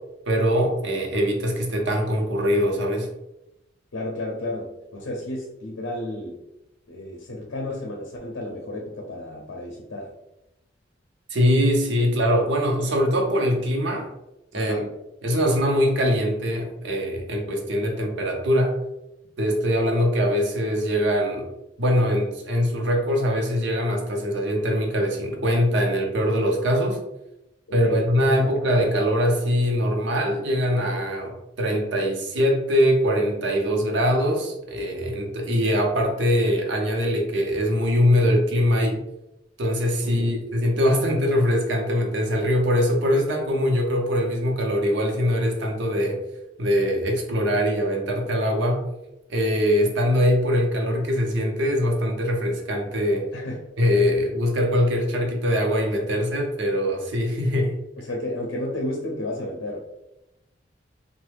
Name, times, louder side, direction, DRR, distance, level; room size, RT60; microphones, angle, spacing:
voice 1, 0.3-3.1 11.3-14.1 14.5-14.9 15.2-18.7 19.4-21.5 21.8-27.0 27.7-39.0 39.6-46.2 46.6-48.8 49.3-53.3 53.8-57.8, equal, 70° right, 2 dB, 0.7 m, -22 dB
voice 2, 3.9-6.4 6.9-10.1 14.5-14.9 27.7-28.5 40.0-40.4 53.3-53.6 58.0-59.8, left 1 dB, 80° left, 0 dB, 0.6 m, -32 dB
3.1 x 2.1 x 3.3 m, 0.89 s
head